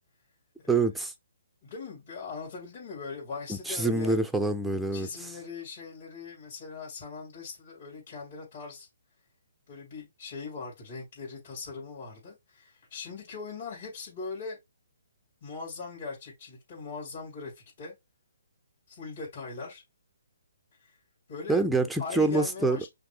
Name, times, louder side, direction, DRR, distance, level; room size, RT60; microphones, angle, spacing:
voice 1, 0.7-1.1 3.5-5.3 21.5-22.9, right 3 dB, ahead, 0.5 m, -26 dB
voice 2, 1.6-4.1 4.9-8.9 9.7-14.6 15.4-17.9 18.9-19.8 20.8-21.0 21.3-21.6 22.0-22.9, left 4 dB, 50° left, 3.0 m, -40 dB
5.8 x 2.0 x 3.6 m
hypercardioid pair, 145°, 0 cm